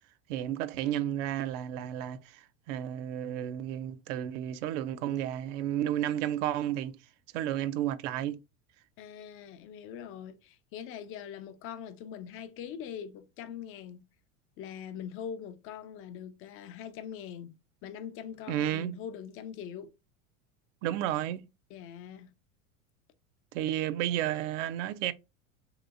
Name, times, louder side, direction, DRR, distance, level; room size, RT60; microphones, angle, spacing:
voice 1, 0.3-7.0 7.3-8.4 18.5-19.0 20.8-21.4 23.5-25.1, right 11 dB, 60° right, 0.5 m, -32 dB
voice 2, 9.0-14.1 14.6-17.5 17.8-19.9 21.7-22.3, left 8 dB, 35° left, 0.4 m, -42 dB
3.0 x 2.9 x 2.4 m
hypercardioid pair, 100°, 41 cm